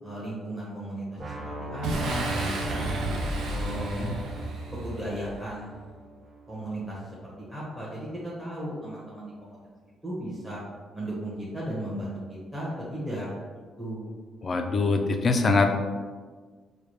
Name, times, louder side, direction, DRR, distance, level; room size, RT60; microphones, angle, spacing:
voice 1, 0.0-2.8 3.4-4.2 4.8-5.7 6.5-9.6 10.0-10.6 10.9-13.3 13.8-14.1, right 1 dB, 5° right, -8 dB, 1.2 m, -36 dB
sound 1, 1.2-7.1, right 1 dB, 30° right, 0.6 m, -39 dB
Boom, 1.8-5.4, right 1 dB, 75° right, 0.6 m, -32 dB
voice 2, 14.4-15.7, left 3 dB, 40° left, 5 dB, 0.4 m, -23 dB
4.7 x 2.3 x 3.1 m, 1.5 s
cardioid pair, 90°, 0 cm